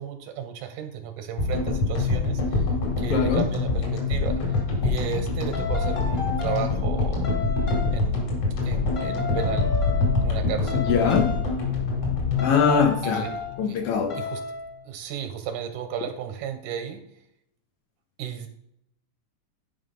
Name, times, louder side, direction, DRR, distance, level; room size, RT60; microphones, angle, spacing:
voice 1, 0.0-2.7 3.0-4.5 4.8-7.3 7.9-8.4 8.6-9.7 10.2-10.9 13.0-13.8 14.1-14.4 14.9-17.0 18.2-18.5, right 9 dB, 80° right, 7 dB, 2.0 m, -33 dB
sound 1, 1.4-13.7, left 4 dB, 50° left, 3.2 m, -25 dB
voice 2, 3.1-3.4 10.7-11.3 12.4-13.2 13.6-14.1, left 6 dB, 85° left, 3 dB, 1.3 m, -22 dB
sound 2, 4.5-4.7 5.5-6.8 7.2-8.0 9.0-10.4 10.7-11.6 12.4-13.6 14.1-14.7, left 4 dB, 30° left, 1.5 m, -33 dB
10.5 x 3.6 x 5.2 m, 0.79 s
omnidirectional pair, 3.8 m